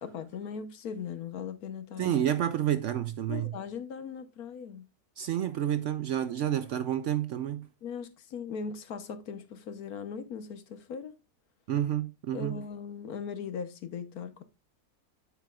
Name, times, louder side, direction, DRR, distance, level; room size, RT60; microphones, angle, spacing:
voice 1, 0.0-2.2 3.3-4.9 7.8-11.2 12.3-14.4, left 6 dB, 75° left, 1.4 m, -39 dB
voice 2, 2.0-3.5 5.2-7.7 11.7-12.6, right 11 dB, 70° right, 0.7 m, -29 dB
9.1 x 8.2 x 2.3 m
omnidirectional pair, 1.6 m